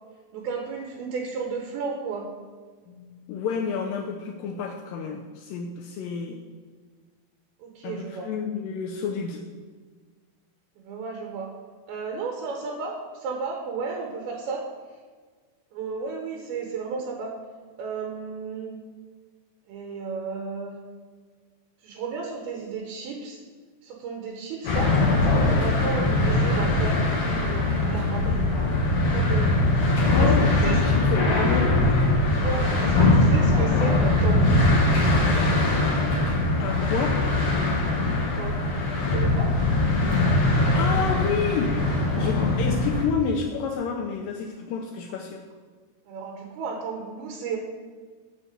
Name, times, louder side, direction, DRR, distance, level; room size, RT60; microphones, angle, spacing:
voice 1, 0.3-2.3 7.6-8.3 10.8-11.5 11.9-14.6 15.7-17.3 17.8-18.8 19.7-20.8 21.8-23.4 23.8-27.0 27.3-28.5 29.1-29.5 30.2-30.3 30.6-30.8 32.3-34.7 38.1-39.5 46.1-47.6, right 5 dB, 80° right, 1 dB, 2.9 m, -33 dB
voice 2, 2.9-6.4 7.8-9.5 30.1-31.9 36.6-37.2 40.4-41.8 42.2-45.4, left 6 dB, 80° left, 2 dB, 2.0 m, -30 dB
sound 1, 24.6-43.1, left 2 dB, 60° left, 1.6 m, -21 dB
9.1 x 4.8 x 6.6 m, 1.5 s
omnidirectional pair, 4.5 m